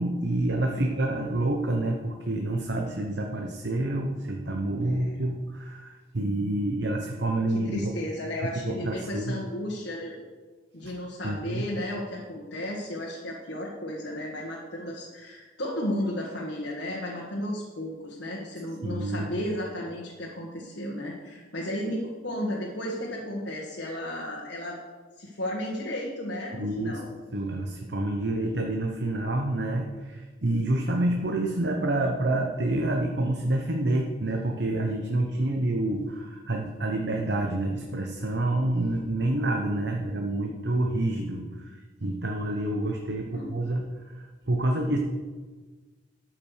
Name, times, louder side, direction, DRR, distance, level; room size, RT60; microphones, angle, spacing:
voice 1, 0.0-8.0 8.6-9.3 10.8-10.9 11.2-11.6 18.8-19.3 26.6-27.0 27.3-43.8 44.5-45.0, right 1 dB, 60° right, 2 dB, 1.0 m, -28 dB
voice 2, 0.7-1.0 4.8-5.2 7.5-10.2 10.7-24.8 25.2-27.1 35.4-35.5 43.3-43.5, left 1 dB, 70° left, -4 dB, 1.8 m, -34 dB
13.0 x 6.0 x 6.5 m, 1.4 s
head